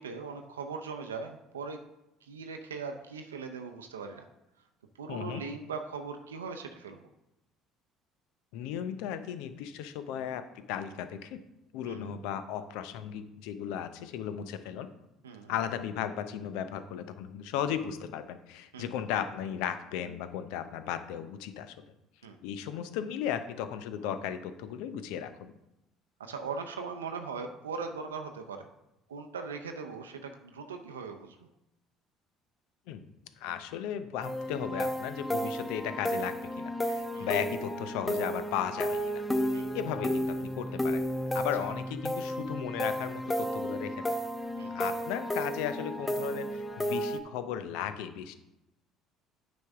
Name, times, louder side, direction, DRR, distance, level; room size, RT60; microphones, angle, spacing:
voice 1, 0.0-1.8 2.2-4.3 5.0-7.0 11.8-12.1 15.2-15.5 18.7-18.9 22.2-22.4 26.2-28.7 29.1-31.4 37.1-37.3 39.5-39.8 41.6-41.7 44.6-44.8, right 5 dB, 90° right, 5 dB, 0.5 m, -40 dB
voice 2, 5.1-5.4 8.5-11.4 11.7-14.9 15.5-21.8 22.4-25.5 32.9-33.1 33.4-39.3 39.7-41.0 41.3-44.2 44.7-48.3, left 9 dB, 70° left, 11 dB, 0.6 m, -36 dB
sound 1, 34.2-47.2, equal, 10° left, 0.8 m, -33 dB
9.1 x 5.2 x 3.5 m, 0.91 s
hypercardioid pair, 60°, 0 cm